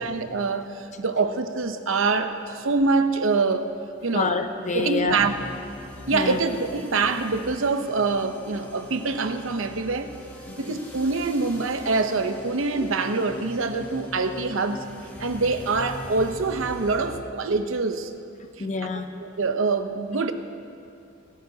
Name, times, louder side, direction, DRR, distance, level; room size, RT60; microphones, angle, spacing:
voice 1, 0.0-3.7 4.0-4.3 4.7-5.3 6.1-10.1 10.6-14.8 15.2-18.1 19.2-20.3, right 3 dB, 70° right, 8 dB, 0.8 m, -25 dB
voice 2, 4.1-5.2 6.1-6.4 10.5-10.6 18.6-19.2, left 3 dB, 35° left, 7 dB, 0.7 m, -27 dB
sound 1, 5.1-17.1, left 1 dB, 10° left, 1.6 m, -41 dB
21.0 x 13.5 x 2.8 m, 2.5 s
head